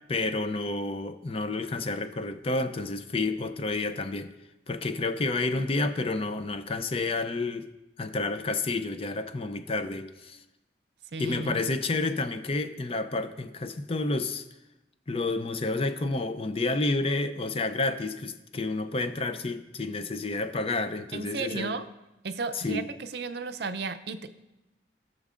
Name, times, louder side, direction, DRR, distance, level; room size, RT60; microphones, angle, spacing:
voice 1, 0.1-4.3 4.7-7.7 8.0-10.4 11.2-14.4 15.1-21.7 22.5-22.9, left 3 dB, 30° left, 9 dB, 0.4 m, -30 dB
voice 2, 11.1-11.6 21.1-21.9 22.2-24.3, right 4 dB, 65° right, 10 dB, 0.5 m, -34 dB
19.0 x 6.4 x 2.5 m, 0.98 s
head